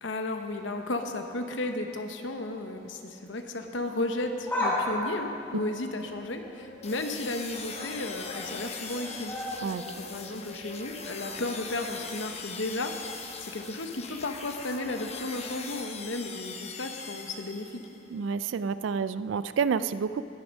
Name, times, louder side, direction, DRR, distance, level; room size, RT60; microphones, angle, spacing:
voice 1, 0.0-9.3 9.9-17.8, left 2 dB, 80° left, 5 dB, 1.0 m, -34 dB
sound 1, 4.2-7.1 7.5-7.9 8.2-12.2 12.5-12.6 13.6-13.7, left 1 dB, 10° left, 3.1 m, -36 dB
sound 2, 6.8-18.0, left 5 dB, 35° left, 0.9 m, -41 dB
voice 2, 18.1-20.3, right 6 dB, 80° right, 14 dB, 0.3 m, -29 dB
21.0 x 7.0 x 5.3 m, 2.7 s
head